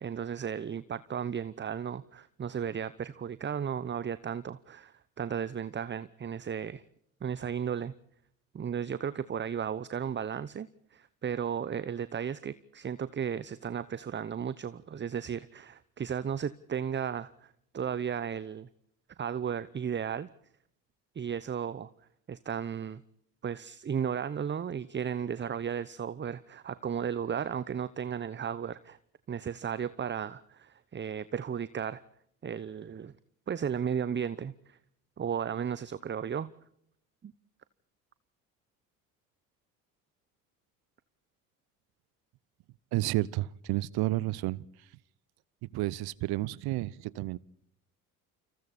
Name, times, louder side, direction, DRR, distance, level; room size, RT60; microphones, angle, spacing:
voice 1, 0.0-6.8 7.2-7.9 8.5-18.7 19.2-20.3 21.1-21.9 22.3-23.0 23.4-29.0 29.3-32.0 32.4-33.1 33.5-34.8 35.2-36.5 37.2-37.3, right 8 dB, 25° right, 0.9 m, -34 dB
voice 2, 42.9-44.7 45.6-47.4, right 18 dB, 60° right, 0.9 m, -31 dB
29.5 x 27.0 x 4.3 m
hypercardioid pair, 60°, 43 cm